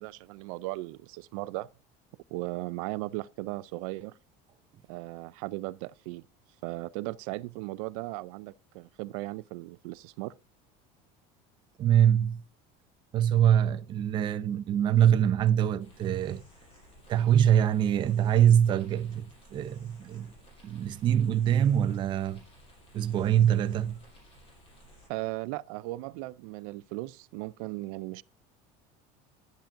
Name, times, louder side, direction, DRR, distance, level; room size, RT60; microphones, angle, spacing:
voice 1, 0.0-1.7 2.3-4.2 4.9-6.3 6.6-10.3 25.1-28.2, right 20 dB, 85° right, 0.4 m, -37 dB
voice 2, 11.8-12.4 13.1-16.4 17.1-20.3 20.6-22.4 22.9-24.0, right 10 dB, 30° right, 0.6 m, -24 dB
sound 1, 15.8-25.1, equal, 35° left, 5.5 m, -56 dB
10.5 x 10.5 x 2.6 m
cardioid pair, 175°, 17 cm